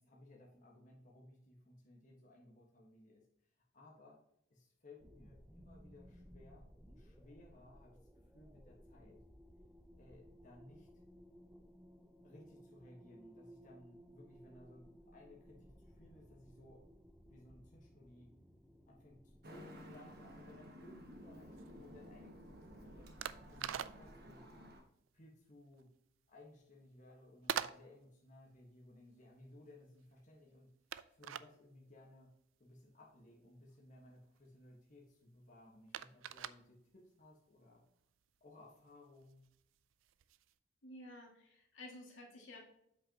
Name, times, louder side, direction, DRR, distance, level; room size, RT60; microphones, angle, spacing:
voice 1, 0.0-3.2 3.7-4.2 4.5-8.0 8.3-9.2 10.0-11.0 12.2-16.8 17.2-18.3 18.9-24.4 25.1-25.9 26.3-30.7 31.1-32.3 32.6-37.8 38.4-39.5, left 1 dB, 40° left, -3 dB, 1.4 m, -60 dB
sound 1, 5.0-24.8, equal, 5° right, 0.5 m, -61 dB
Traffic noise roadway noise, 19.4-24.8, equal, 50° right, 1.3 m, -55 dB
sound 2, 20.8-40.6, right 9 dB, 80° right, 0.4 m, -48 dB
voice 2, 40.8-42.6, left 1 dB, 75° left, -1 dB, 2.2 m, -53 dB
7.8 x 6.0 x 2.9 m, 0.76 s
head